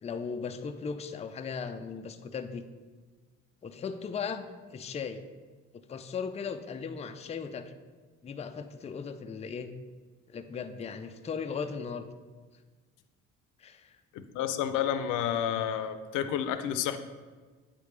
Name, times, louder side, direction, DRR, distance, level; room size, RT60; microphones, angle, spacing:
voice 1, 0.0-2.6 3.6-5.2 5.9-7.7 8.2-9.7 10.3-12.1 13.6-14.0, left 6 dB, 20° left, 8 dB, 0.4 m, -37 dB
voice 2, 14.1-17.0, left 9 dB, 85° left, 10 dB, 0.5 m, -30 dB
8.9 x 3.4 x 3.2 m, 1.4 s
cardioid pair, 95°, 31 cm